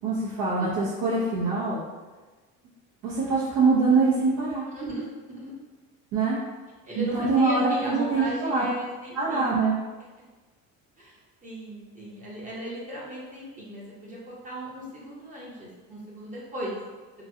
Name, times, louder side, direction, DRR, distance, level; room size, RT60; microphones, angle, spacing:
voice 1, 0.0-1.8 3.0-4.7 6.1-6.4 7.0-8.6 9.1-9.8, right 4 dB, 85° right, -7 dB, 0.8 m, -24 dB
voice 2, 4.7-5.5 6.8-9.5 11.0-16.8, right 1 dB, 25° right, -6 dB, 0.7 m, -37 dB
2.9 x 2.5 x 2.7 m, 1.3 s
cardioid pair, 130°, 33 cm